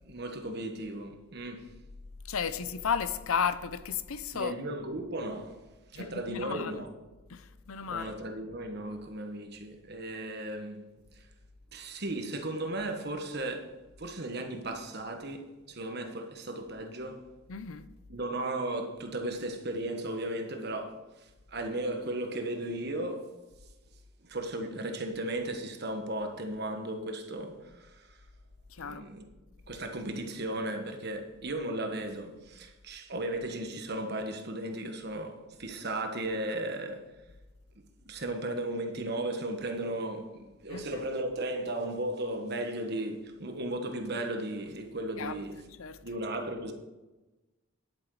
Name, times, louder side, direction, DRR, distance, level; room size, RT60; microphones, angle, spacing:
voice 1, 0.0-1.6 4.3-5.6 5.9-6.9 7.9-10.8 11.1-11.2 11.7-13.7 14.0-17.2 18.1-23.3 24.2-28.1 28.8-29.3 29.7-37.0 38.1-45.6 46.0-46.7, right 1 dB, 50° right, 1.4 m, -35 dB
voice 2, 2.2-4.5 6.0-6.8 7.3-8.2 17.5-17.9 28.7-29.0 40.7-41.0 45.2-45.5 45.8-46.0, left 6 dB, 90° left, 0.6 m, -34 dB
10.5 x 8.8 x 4.8 m
head